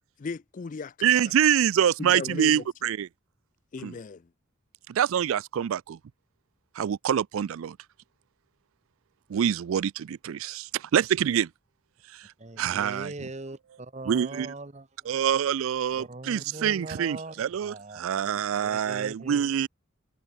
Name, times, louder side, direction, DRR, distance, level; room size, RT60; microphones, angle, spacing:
voice 1, 0.2-1.3 2.0-2.7 3.7-4.3, left 4 dB, 40° left, 0.4 m, -37 dB
voice 2, 1.0-3.1 3.8-3.9 4.9-6.0 6.8-7.8 9.3-11.5 12.6-13.1 14.1-14.5 15.1-19.7, right 9 dB, 80° right, 0.4 m, -25 dB
voice 3, 12.4-15.1 16.0-18.0 18.6-19.4, right 2 dB, 35° right, 1.0 m, -41 dB
open air
head